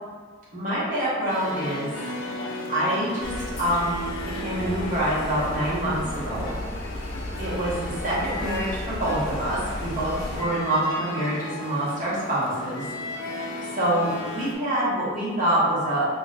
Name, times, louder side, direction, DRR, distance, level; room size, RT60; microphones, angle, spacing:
voice 1, 0.5-1.9 2.7-3.3 3.6-4.0 4.2-6.5 7.4-12.8 13.3-16.1, right 1 dB, 35° right, -8 dB, 1.1 m, -26 dB
sound 1, 1.3-14.5, left 1 dB, 65° left, 0.5 m, -36 dB
sound 2, 3.2-10.4, left 1 dB, 40° left, 0.9 m, -35 dB
3.9 x 2.9 x 2.4 m, 1.5 s
head